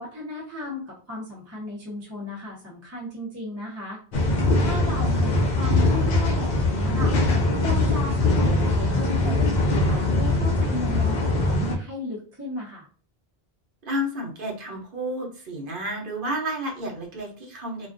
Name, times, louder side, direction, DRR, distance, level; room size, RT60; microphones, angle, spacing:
voice 1, 0.0-4.0 4.6-7.1 7.6-12.9, left 1 dB, 20° right, -5 dB, 0.6 m, -35 dB
sound 1, 4.1-11.7, left 2 dB, 55° left, 0.6 m, -22 dB
voice 2, 13.9-17.9, equal, 60° right, 1 dB, 0.9 m, -31 dB
2.4 x 2.2 x 2.5 m, 0.40 s
omnidirectional pair, 1.0 m